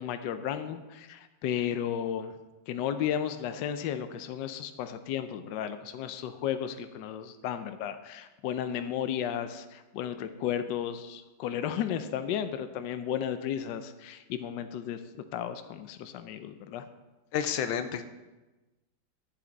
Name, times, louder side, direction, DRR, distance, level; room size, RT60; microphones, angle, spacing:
voice 1, 0.0-2.3 2.7-16.9, left 9 dB, 75° left, 10 dB, 1.2 m, -34 dB
voice 2, 17.3-18.0, left 8 dB, 90° left, 9 dB, 1.4 m, -30 dB
12.5 x 7.7 x 4.0 m, 1.1 s
omnidirectional pair, 2.1 m